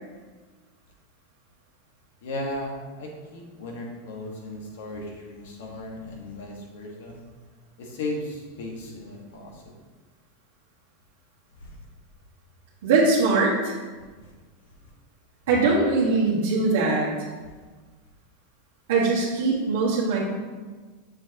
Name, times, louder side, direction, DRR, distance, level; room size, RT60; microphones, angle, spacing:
voice 1, 2.2-7.2 7.8-9.5 11.6-11.7, left 1 dB, 75° left, 0 dB, 1.5 m, -36 dB
voice 2, 12.8-13.7 15.5-17.1 18.9-20.3, right 3 dB, 75° right, -7 dB, 1.4 m, -21 dB
7.2 x 5.2 x 2.9 m, 1.4 s
supercardioid pair, 140°, 0 cm